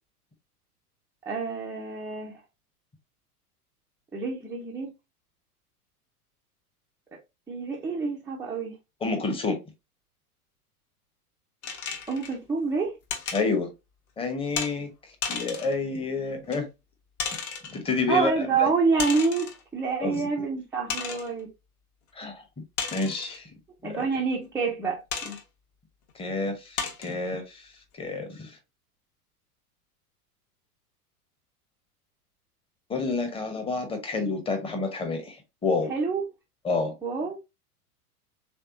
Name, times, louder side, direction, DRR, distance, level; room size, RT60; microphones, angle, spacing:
voice 1, 1.3-2.3 4.1-4.9 7.5-8.8 12.1-12.9 18.1-21.5 23.8-25.4 35.9-36.2 37.0-37.4, right 4 dB, 5° right, 0.5 m, -27 dB
voice 2, 9.0-9.6 13.3-13.7 14.2-14.9 15.3-16.7 17.7-18.3 18.6-18.7 20.0-20.3 22.1-22.4 22.9-23.5 23.8-24.0 26.1-27.7 28.0-28.6 32.9-35.9 36.6-36.9, left 3 dB, 10° left, 0.9 m, -29 dB
sound 1, 11.6-12.4 13.1-13.5 14.6-14.7 15.2-15.8 16.5-16.6 17.2-17.8 19.0-19.6 20.1-20.2 20.9-21.3 22.8-23.4 25.1-25.4 26.1-26.2 26.8-27.1, left 6 dB, 45° left, 1.2 m, -33 dB
3.4 x 3.3 x 2.8 m
figure-of-eight pair, 95°, 46 cm